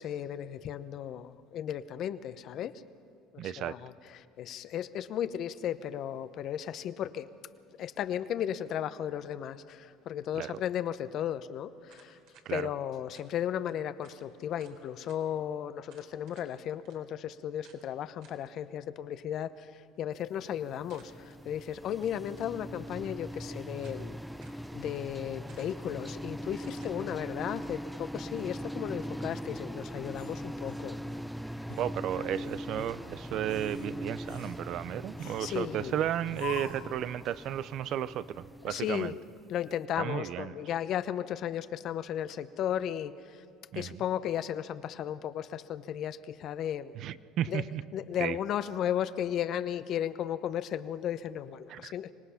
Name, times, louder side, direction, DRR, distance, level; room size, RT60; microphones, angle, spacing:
voice 1, 0.0-2.8 3.3-7.3 7.8-12.2 12.5-24.2 24.7-31.0 32.2-32.5 35.4-36.0 38.6-39.2 39.5-43.4 43.7-46.9 47.5-47.6 47.9-52.1, left 10 dB, 55° left, 13 dB, 0.8 m, -35 dB
voice 2, 3.4-3.7 10.4-10.5 12.5-12.7 31.8-39.1 40.0-40.5 43.7-44.0 47.0-47.8 48.2-48.4 51.7-51.9, right 11 dB, 55° right, 17 dB, 0.6 m, -34 dB
sound 1, 11.9-12.5 13.1-13.3 13.7-13.8 14.0-14.2 14.6-15.2 15.9-16.5 16.8-17.0 17.6-17.8 18.2-18.5 20.9-21.4 22.2-22.6 23.3-24.1 24.4-24.6 25.5-25.9 26.6-27.0, right 5 dB, 75° right, 3.8 m, -60 dB
sound 2, 20.5-39.5, equal, ahead, 0.4 m, -41 dB
sound 3, 30.1-31.3 31.7-31.9 32.4-33.0 33.4-33.9 34.3-34.6 35.2-35.7 36.3-37.0, left 10 dB, 85° left, 1.9 m, -45 dB
25.0 x 18.5 x 5.8 m, 2.7 s
supercardioid pair, 105°, 0 cm